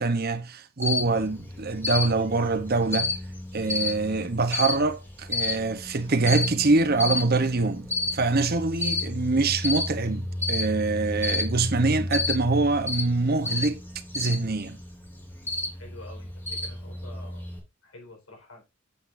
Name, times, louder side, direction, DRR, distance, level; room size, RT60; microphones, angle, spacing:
voice 1, 0.0-3.1 3.5-13.8 14.1-14.8, right 3 dB, 45° right, 0.9 m, -25 dB
Cricket, 0.8-17.6, left 2 dB, 10° left, 2.5 m, -31 dB
voice 2, 15.7-17.5 17.8-18.6, left 2 dB, 75° left, 4.6 m, -48 dB
8.4 x 8.1 x 2.6 m
head